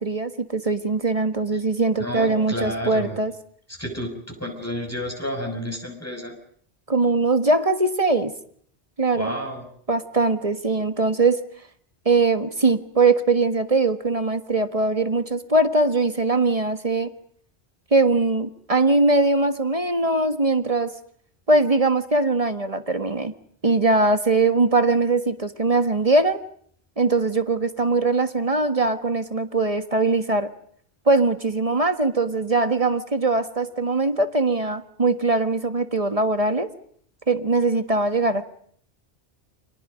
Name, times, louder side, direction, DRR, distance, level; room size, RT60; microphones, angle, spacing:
voice 1, 0.0-3.3 6.9-8.3 9.0-9.3 9.9-11.4 12.0-17.1 17.9-20.9 21.5-23.3 23.6-26.4 27.0-30.5 31.1-36.7 37.3-38.4, right 3 dB, 30° right, 9 dB, 1.6 m, -21 dB
voice 2, 2.0-3.2 3.8-6.3 9.1-9.6, equal, 15° left, 3 dB, 6.4 m, -30 dB
30.0 x 26.0 x 5.2 m, 0.62 s
omnidirectional pair, 1.2 m